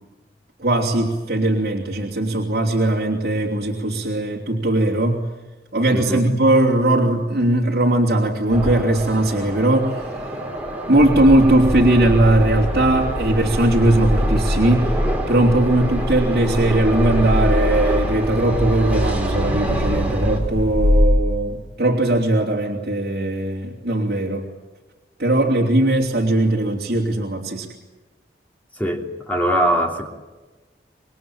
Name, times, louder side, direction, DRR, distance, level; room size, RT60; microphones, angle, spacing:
voice 1, 0.6-5.2 5.7-10.3 10.9-15.0 15.3-24.5 25.2-27.7, right 1 dB, 60° right, -1 dB, 3.2 m, -19 dB
voice 2, 5.9-6.3 28.8-30.1, right 1 dB, 10° left, 2 dB, 3.1 m, -22 dB
sound 1, 8.5-20.4, right 1 dB, 10° right, 4.2 m, -28 dB
sound 2, 11.0-21.0, equal, 40° left, 7.4 m, -23 dB
27.5 x 21.5 x 8.9 m, 1.2 s
head